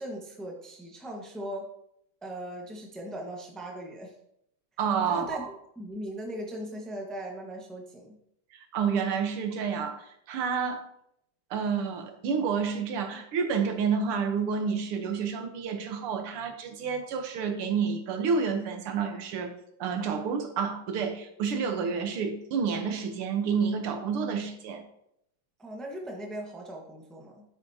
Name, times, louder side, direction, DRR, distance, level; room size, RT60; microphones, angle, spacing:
voice 1, 0.0-1.7 2.2-4.1 5.1-8.2 25.6-27.4, right 1 dB, ahead, 0 dB, 0.8 m, -39 dB
voice 2, 4.8-5.5 8.5-10.8 11.5-19.5 19.8-24.8, right 6 dB, 90° right, 5 dB, 1.9 m, -29 dB
8.8 x 8.3 x 2.8 m, 0.77 s
omnidirectional pair, 2.3 m